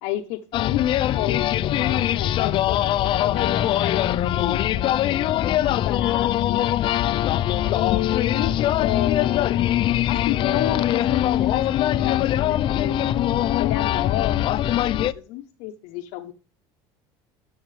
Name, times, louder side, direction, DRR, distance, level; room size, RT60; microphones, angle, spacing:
voice 1, 0.0-0.9 1.1-2.8 3.2-5.3 5.6-6.6 7.7-13.0 13.5-14.4 15.0-16.3, left 14 dB, 75° left, 2 dB, 0.8 m, -30 dB
sound 1, 0.5-15.1, left 12 dB, 45° left, 0.5 m, -22 dB
11.0 x 6.4 x 3.3 m, 0.38 s
supercardioid pair, 110°, 11 cm